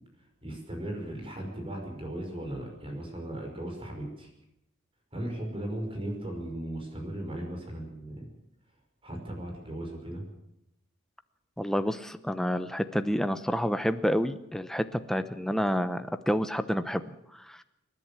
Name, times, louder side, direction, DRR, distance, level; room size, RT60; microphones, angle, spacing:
voice 1, 0.4-4.3 5.1-8.3 9.0-10.2, right 1 dB, 25° right, 3 dB, 5.4 m, -37 dB
voice 2, 11.6-17.6, equal, ahead, 10 dB, 0.8 m, -29 dB
28.0 x 11.0 x 8.7 m, 0.83 s
head